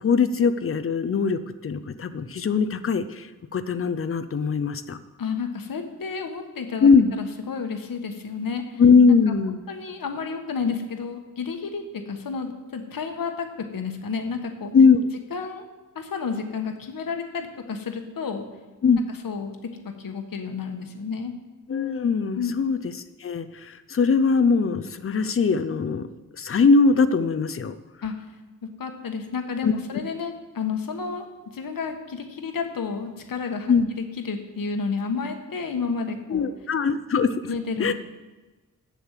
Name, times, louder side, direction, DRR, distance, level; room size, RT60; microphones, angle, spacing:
voice 1, 0.0-3.3 3.5-5.0 6.8-7.1 8.8-9.6 14.7-15.1 18.8-19.0 21.7-22.8 23.2-26.1 26.4-27.7 29.6-29.7 33.7-33.9 36.3-37.4 37.8-37.9, left 5 dB, 40° left, 12 dB, 0.5 m, -20 dB
voice 2, 5.2-8.8 9.1-9.2 9.7-14.7 15.3-15.6 15.9-18.4 19.1-19.6 19.8-21.3 22.3-22.5 28.0-28.3 28.6-31.3 31.5-36.5 37.5-37.9, left 5 dB, 80° left, 5 dB, 1.3 m, -31 dB
8.8 x 7.0 x 7.4 m, 1.2 s
wide cardioid pair, 175°, 34 cm